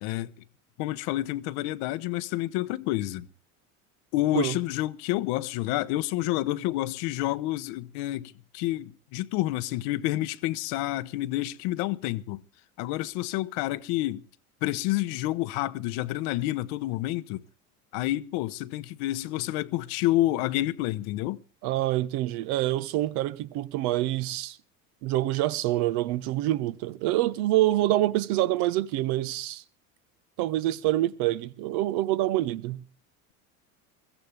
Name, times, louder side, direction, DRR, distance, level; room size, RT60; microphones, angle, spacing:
voice 1, 0.0-0.3 0.8-3.3 4.1-12.4 12.8-14.3 14.6-17.4 17.9-21.4, left 16 dB, 65° left, 1.0 m, -29 dB
voice 2, 21.6-24.6 25.0-29.6 30.4-32.8, right 15 dB, 60° right, 1.0 m, -26 dB
22.5 x 14.5 x 3.4 m
hypercardioid pair, 80°, 43 cm